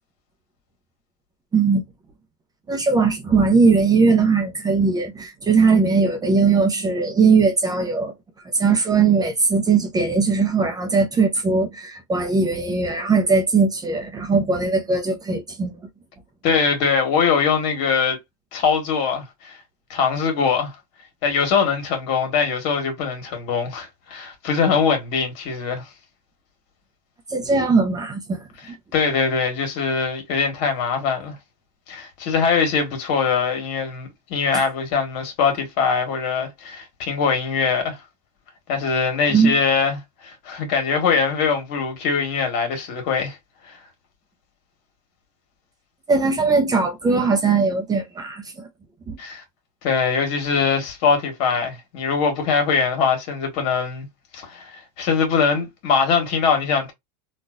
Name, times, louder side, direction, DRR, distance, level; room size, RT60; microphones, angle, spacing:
voice 1, 1.5-1.8 2.7-8.1 8.5-15.7 27.3-28.4 39.3-39.5 46.1-48.4 49.1-49.2, right 4 dB, 20° right, 0.6 m, -19 dB
voice 2, 16.4-18.2 18.5-19.6 19.9-20.7 21.2-25.9 28.6-31.3 31.9-38.0 38.7-43.4 43.6-43.8 49.2-49.4 49.8-54.1 54.3-56.9, left 5 dB, 60° left, 1.6 m, -22 dB
3.8 x 2.5 x 2.4 m
supercardioid pair, 120°, 21 cm